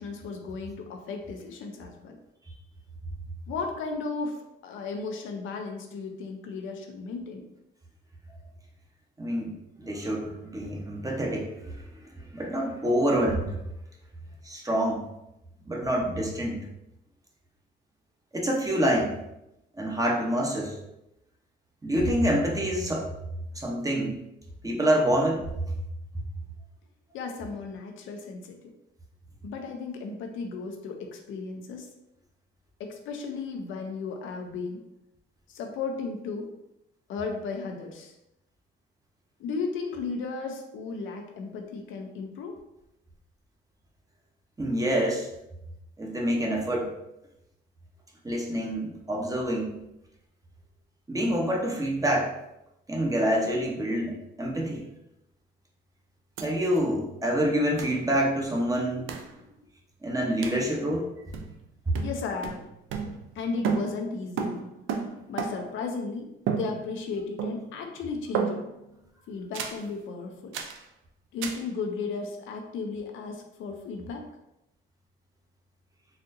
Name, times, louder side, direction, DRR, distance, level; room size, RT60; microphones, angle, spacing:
voice 1, 0.0-2.2 3.5-4.4 4.6-7.4 27.1-28.6 29.4-31.9 32.8-34.8 35.5-36.5 37.1-38.1 39.4-42.5 59.4-59.5 62.0-62.6 63.3-64.7 65.3-68.6 69.3-70.6 71.3-74.2, left 4 dB, 80° left, 3 dB, 0.6 m, -35 dB
voice 2, 9.2-13.6 14.4-15.1 15.7-16.7 18.3-19.2 19.8-20.7 21.8-23.1 23.5-24.2 24.6-25.5 44.6-45.3 46.0-46.9 48.2-49.8 51.1-52.3 52.9-54.8 56.4-59.1 60.0-61.1, equal, 15° right, -1 dB, 0.8 m, -27 dB
sound 1, 56.4-56.5 56.7-56.8 57.8-58.0 59.1-59.3 60.4-60.7 61.3-61.7 61.9-63.4 63.6-65.8 66.5-67.1 67.4-67.8 68.3-68.9 69.5-69.9 70.5-70.8 71.4-71.7, right 6 dB, 80° right, 0.4 m, -32 dB
4.1 x 2.5 x 2.6 m, 0.87 s
cardioid pair, 90°, 20 cm